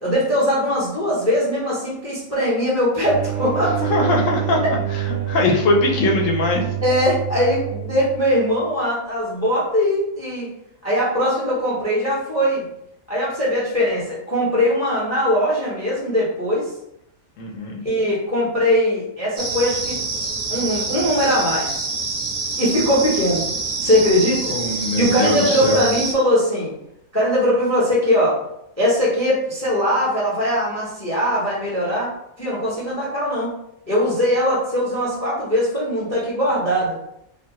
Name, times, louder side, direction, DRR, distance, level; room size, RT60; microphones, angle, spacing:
voice 1, 0.0-3.8 6.8-10.5 10.8-12.6 13.1-16.7 17.8-20.0 20.5-21.9 22.6-23.4 23.8-24.5 25.0-26.7 27.1-28.4 28.8-32.1 32.4-33.5 33.9-37.0, equal, 15° left, -6 dB, 0.6 m, -20 dB
sound 1, 3.0-8.4, right 13 dB, 90° right, 1.1 m, -27 dB
voice 2, 3.8-6.7 17.4-17.8 24.5-25.8, left 2 dB, 70° left, 0 dB, 0.9 m, -21 dB
sound 2, 19.4-26.1, right 3 dB, 65° right, 0.4 m, -26 dB
2.7 x 2.2 x 2.8 m, 0.77 s
omnidirectional pair, 1.5 m